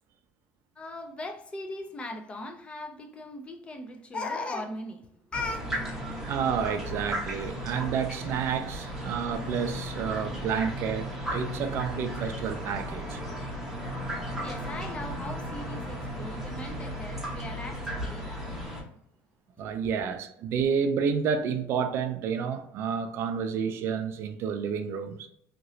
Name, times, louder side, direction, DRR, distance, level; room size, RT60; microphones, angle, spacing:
voice 1, 0.8-5.0 5.3-5.6 14.4-18.5 19.6-20.1, left 2 dB, 20° left, 0.4 m, -38 dB
sound 1, 5.3-18.8, equal, 5° right, 0.8 m, -35 dB
voice 2, 6.0-13.2 19.6-25.3, right 7 dB, 50° right, 0.4 m, -30 dB
2.9 x 2.8 x 2.6 m
cardioid pair, 150°, 6 cm